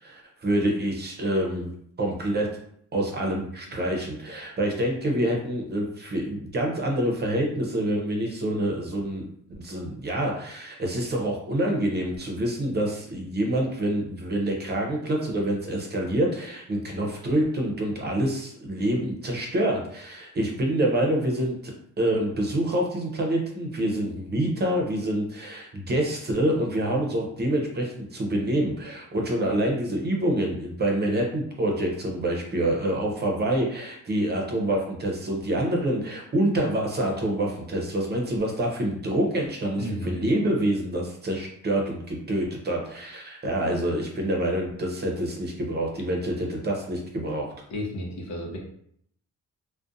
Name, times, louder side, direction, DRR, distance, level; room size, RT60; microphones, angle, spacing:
voice 1, 0.0-1.7 2.0-2.5 2.9-9.2 9.5-47.5, right 1 dB, 35° right, 0 dB, 0.7 m, -26 dB
voice 2, 39.8-40.3 47.7-48.6, left 1 dB, 65° left, -1 dB, 0.8 m, -32 dB
2.4 x 2.2 x 2.5 m, 0.68 s
cardioid pair, 90°, 30 cm